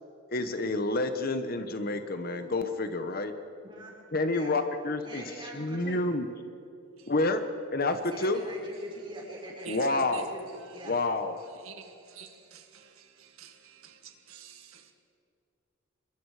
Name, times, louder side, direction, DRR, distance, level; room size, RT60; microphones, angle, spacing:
voice 1, 0.3-3.3 4.1-5.2 5.5-6.2 7.1-7.4 7.7-8.4 9.7-10.3 10.9-11.3, left 2 dB, 45° left, 1.1 m, -28 dB
voice 2, 5.0-6.1 8.1-10.9, right 1 dB, 20° right, 5.2 m, -43 dB
voice 3, 11.6-14.9, right 7 dB, 75° right, 1.7 m, -48 dB
27.0 x 22.5 x 4.9 m
head